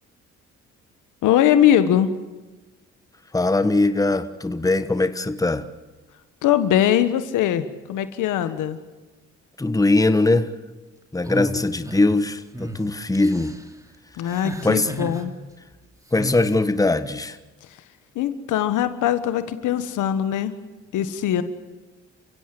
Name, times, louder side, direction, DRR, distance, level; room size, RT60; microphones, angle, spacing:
voice 1, 1.2-2.1 6.4-8.8 14.1-15.3 18.1-20.5 20.9-21.4, left 10 dB, 85° left, 11 dB, 1.6 m, -21 dB
voice 2, 3.3-5.7 9.6-10.5 11.1-13.6 14.6-14.9 16.1-17.4, left 2 dB, 10° left, 11 dB, 1.3 m, -21 dB
sound 1, 11.2-12.1 12.5-12.8 13.1-13.6 14.3-15.2 16.1-16.5, equal, 10° right, 2.7 m, -32 dB
29.5 x 16.0 x 7.9 m, 1.2 s
cardioid pair, 90°, 30 cm